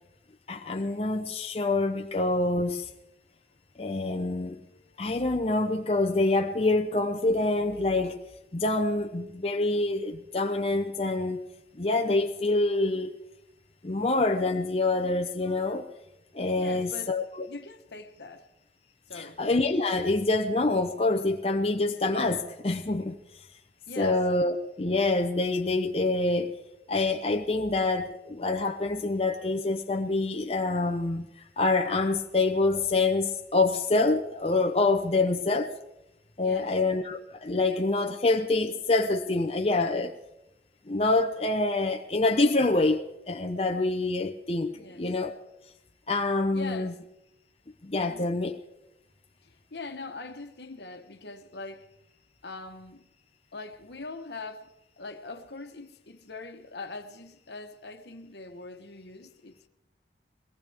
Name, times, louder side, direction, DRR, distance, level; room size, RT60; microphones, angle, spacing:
voice 1, 0.5-2.9 3.8-4.6 5.0-8.2 8.5-11.5 11.8-13.1 13.8-15.8 16.3-17.2 19.1-23.2 24.0-26.6 26.9-31.3 31.6-35.7 36.4-40.1 40.9-43.0 43.3-45.3 46.1-46.9 47.8-48.6, left 2 dB, 35° left, 0.8 m, -26 dB
voice 2, 16.6-17.1 17.5-18.5 19.1-19.4 23.9-24.2 36.4-36.7 44.7-45.1 46.5-46.9 47.9-48.3 49.4-51.9 52.4-53.1 53.5-59.7, left 3 dB, 70° left, 1.3 m, -42 dB
22.0 x 18.5 x 3.5 m
head